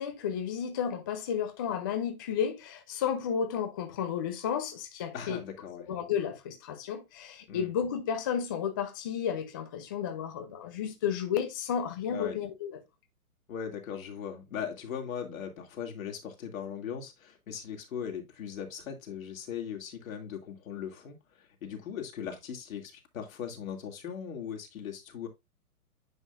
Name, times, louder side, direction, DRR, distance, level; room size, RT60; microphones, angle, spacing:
voice 1, 0.0-5.4 5.9-12.8, left 8 dB, 15° left, 0.4 m, -32 dB
voice 2, 5.1-5.9 7.5-7.7 12.1-12.4 13.5-25.3, left 8 dB, 65° left, 2.7 m, -39 dB
9.6 x 5.4 x 2.5 m
hypercardioid pair, 125°, 45 cm